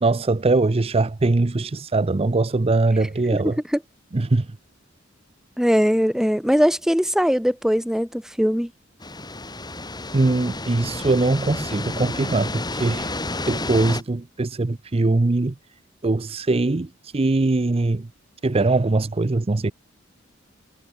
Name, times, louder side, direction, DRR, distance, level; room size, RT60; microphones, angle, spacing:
voice 1, 0.0-3.6 4.1-4.5 10.1-13.1 13.5-15.5 16.0-18.1 18.4-19.7, right 2 dB, 30° right, 0.6 m, -21 dB
voice 2, 5.6-8.7, equal, 5° right, 1.4 m, -20 dB
sound 1, 9.0-14.0, left 2 dB, 20° left, 5.6 m, -31 dB
head